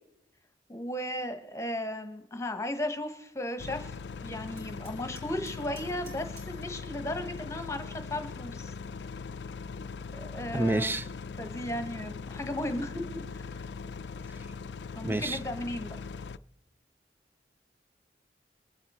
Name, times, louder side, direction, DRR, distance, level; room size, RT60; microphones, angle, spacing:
voice 1, 0.7-3.9 4.2-8.7 10.1-11.0 11.4-13.6 14.9-16.0, left 1 dB, 15° left, 7 dB, 1.1 m, -35 dB
sound 1, 3.6-16.4, left 5 dB, 75° left, 0.4 m, -40 dB
Hammer, 4.6-6.7, right 1 dB, 65° right, 3.5 m, -53 dB
voice 2, 10.5-11.1 15.0-15.4, right 2 dB, 10° right, 14 dB, 0.4 m, -28 dB
23.0 x 7.7 x 4.2 m, 0.86 s
head